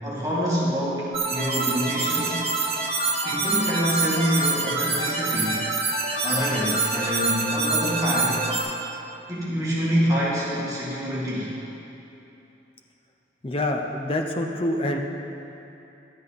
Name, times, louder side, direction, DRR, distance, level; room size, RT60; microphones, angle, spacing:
voice 1, 0.0-2.4 3.2-5.6 6.2-8.4 9.3-11.5, equal, 20° right, -7 dB, 1.8 m, -26 dB
sound 1, 1.1-8.6, right 3 dB, 35° right, 1.0 m, -26 dB
voice 2, 13.4-15.0, left 1 dB, 30° left, 3 dB, 0.6 m, -26 dB
11.5 x 7.9 x 4.0 m, 2.9 s
head